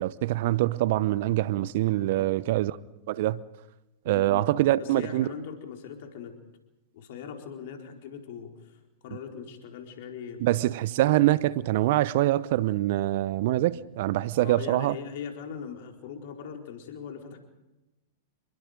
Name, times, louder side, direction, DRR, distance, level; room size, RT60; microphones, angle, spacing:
voice 1, 0.0-2.8 3.1-3.4 4.1-5.3 10.4-14.9, right 15 dB, 60° right, 0.8 m, -24 dB
voice 2, 4.1-4.5 4.7-6.4 6.9-10.6 14.4-17.4, left 7 dB, 60° left, 4.3 m, -41 dB
28.0 x 22.0 x 5.2 m
hypercardioid pair, 105°, 0 cm